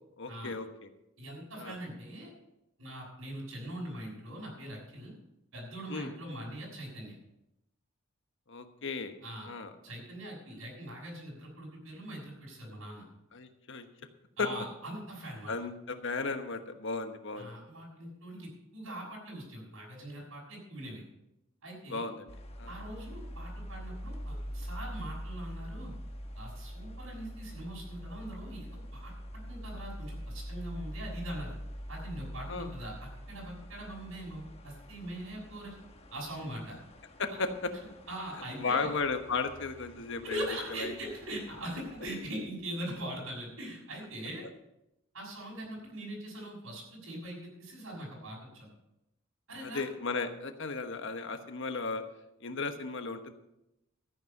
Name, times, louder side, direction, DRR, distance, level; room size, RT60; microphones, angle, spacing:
voice 1, 0.2-0.7 1.6-1.8 5.9-6.1 8.5-9.1 9.5-9.7 13.3-13.9 14.4-14.5 15.5-17.5 21.9-22.3 22.6-22.7 32.5-32.7 37.2-37.7 38.6-40.4 40.7-40.9 49.6-52.0 52.4-53.3, left 4 dB, 65° left, 7 dB, 1.2 m, -35 dB
voice 2, 1.2-2.3 2.8-5.1 5.5-7.1 9.2-9.5 9.8-13.0 14.4-15.5 17.3-21.0 21.6-22.1 22.7-25.9 26.3-29.1 29.5-31.5 31.9-35.7 36.1-36.8 38.1-38.9 40.2-44.4 45.1-48.7 49.5-49.8, right 1 dB, 75° right, -4 dB, 6.4 m, -42 dB
sound 1, 22.3-42.2, equal, 30° left, 1.1 m, -44 dB
14.0 x 9.6 x 5.4 m, 0.88 s
head